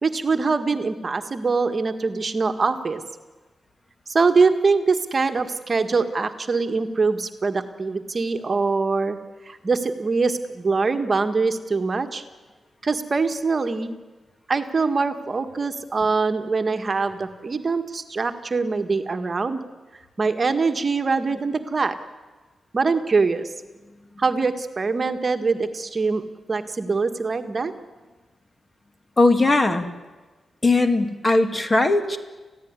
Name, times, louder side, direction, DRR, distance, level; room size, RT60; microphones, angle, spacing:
voice 1, 0.0-3.0 4.1-9.2 9.4-12.2 12.8-13.9 14.5-19.6 20.2-22.0 22.7-23.5 24.2-26.2 26.5-27.7 32.1-32.2, right 4 dB, 40° right, 7 dB, 1.7 m, -23 dB
voice 2, 29.2-29.9 30.6-32.2, left 2 dB, 25° left, 7 dB, 2.2 m, -19 dB
28.0 x 16.0 x 9.8 m, 1.3 s
cardioid pair, 90°, 0 cm